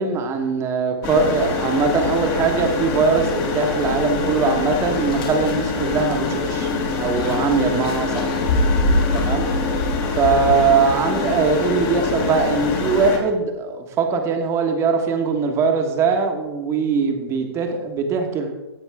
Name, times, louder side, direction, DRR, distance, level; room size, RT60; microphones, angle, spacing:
voice 1, 0.0-6.7 7.0-8.3 9.1-9.5 10.0-18.5, right 5 dB, 20° right, 4 dB, 1.2 m, -21 dB
sound 1, 1.0-13.2, left 4 dB, 25° left, 1.4 m, -25 dB
sound 2, 4.8-11.1, left 1 dB, 60° left, 2.7 m, -25 dB
15.5 x 5.2 x 3.5 m, 1.1 s
hypercardioid pair, 140°, 14 cm